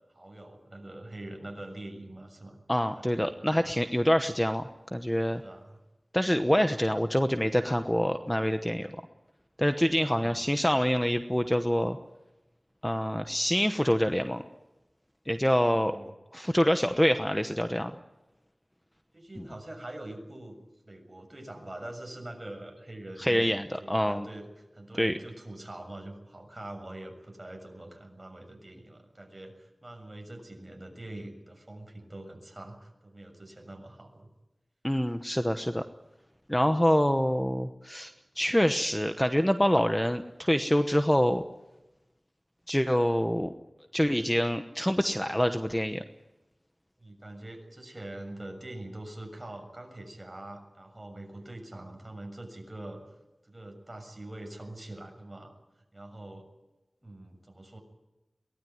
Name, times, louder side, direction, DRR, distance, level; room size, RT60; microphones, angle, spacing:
voice 1, 0.1-2.6 2.9-3.7 5.4-5.8 9.9-10.4 15.5-16.1 19.1-20.5 20.8-34.3 47.0-53.0 53.4-55.5 55.9-56.5 57.0-57.8, right 1 dB, 30° right, 3 dB, 6.9 m, -44 dB
voice 2, 2.7-5.4 6.1-8.9 9.6-12.0 12.8-14.4 15.3-16.0 16.3-17.9 19.4-19.5 23.2-24.3 25.0-25.2 34.8-35.8 36.5-38.1 38.4-41.4 42.7-43.5 43.9-46.0, equal, 10° left, 8 dB, 1.0 m, -26 dB
23.0 x 19.0 x 9.4 m, 1.0 s
wide cardioid pair, 70°, 0 cm